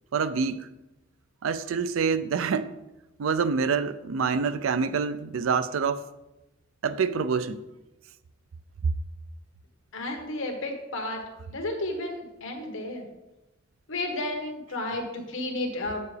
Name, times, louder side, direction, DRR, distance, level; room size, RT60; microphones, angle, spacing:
voice 1, 0.1-0.7 1.4-2.7 3.2-6.0 6.8-7.6, right 5 dB, 80° right, 0.4 m, -26 dB
voice 2, 9.9-11.2 11.5-13.0 13.9-16.0, left 2 dB, 70° left, 1.2 m, -32 dB
8.4 x 6.8 x 3.3 m
head